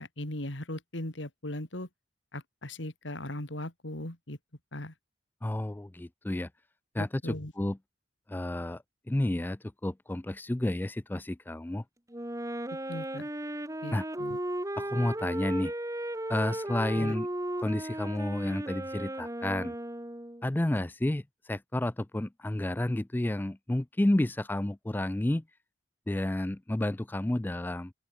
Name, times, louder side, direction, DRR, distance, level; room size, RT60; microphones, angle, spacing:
voice 1, 0.0-1.9 2.3-4.4 4.7-4.9 7.0-7.5 12.9-13.3 13.8-14.4 16.9-17.1, left 1 dB, 80° left, 3.3 m, -38 dB
voice 2, 5.4-6.5 6.9-7.8 8.3-11.8 13.9-14.0 14.8-15.7 16.3-17.3 17.6-19.8 20.4-25.4 26.1-27.9, left 1 dB, 10° left, 0.4 m, -31 dB
Wind instrument woodwind instrument, 12.1-20.5, right 1 dB, 15° right, 2.2 m, -36 dB
open air
head